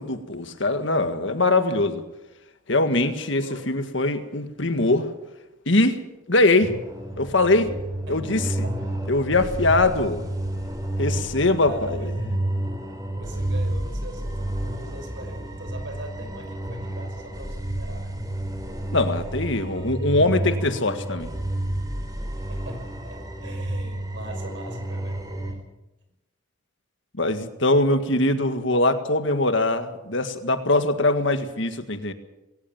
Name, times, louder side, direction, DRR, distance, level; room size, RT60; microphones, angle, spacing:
voice 1, 0.0-2.0 2.7-5.1 5.6-6.0 6.3-6.7 7.2-7.7 8.1-8.5 9.1-10.3 11.0-12.1 18.9-21.3 27.2-32.1, left 2 dB, 65° left, 8 dB, 1.8 m, -22 dB
sound 1, 6.6-25.5, right 1 dB, 20° right, 4.0 m, -30 dB
voice 2, 11.6-12.3 13.2-18.2 19.7-20.0 22.5-25.6, right 1 dB, 60° right, 5 dB, 5.8 m, -41 dB
21.5 x 18.5 x 7.3 m, 0.96 s
head